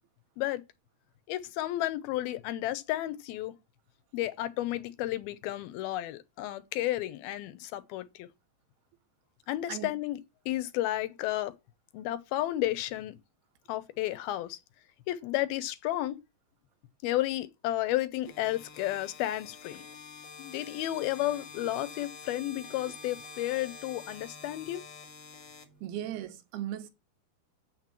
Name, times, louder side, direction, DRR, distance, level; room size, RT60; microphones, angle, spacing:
voice 1, 1.3-3.5 4.1-8.3 9.5-10.2 10.5-11.5 11.9-13.2 13.7-14.6 15.1-16.2 17.0-19.8 20.4-24.8, left 15 dB, 75° left, 2.6 m, -32 dB
sound 1, 18.2-26.3, left 4 dB, 50° left, 2.5 m, -48 dB
voice 2, 25.8-26.9, right 11 dB, 80° right, 3.0 m, -37 dB
7.9 x 6.7 x 7.4 m
omnidirectional pair, 4.6 m